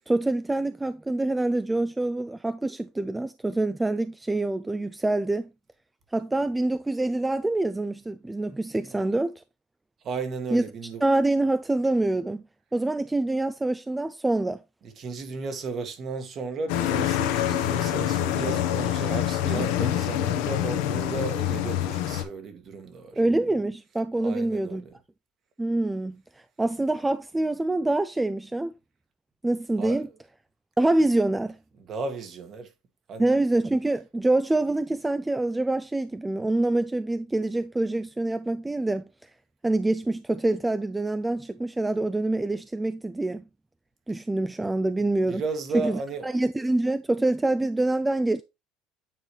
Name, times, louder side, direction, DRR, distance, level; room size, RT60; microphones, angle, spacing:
voice 1, 0.0-5.5 6.1-9.3 10.5-10.6 11.0-12.4 12.7-14.6 23.2-24.8 25.6-26.2 26.6-28.7 29.4-30.1 30.8-31.6 33.2-39.3 39.6-43.4 44.1-45.4 45.7-48.4, right 2 dB, 10° right, 0.3 m, -25 dB
voice 2, 10.0-11.0 14.8-23.2 24.2-24.9 29.8-30.0 31.8-32.7 33.1-33.3 45.3-46.4, right 4 dB, 45° right, 1.5 m, -34 dB
sound 1, 16.7-22.2, left 12 dB, 85° left, 1.1 m, -26 dB
9.2 x 4.0 x 3.1 m
supercardioid pair, 110°, 0 cm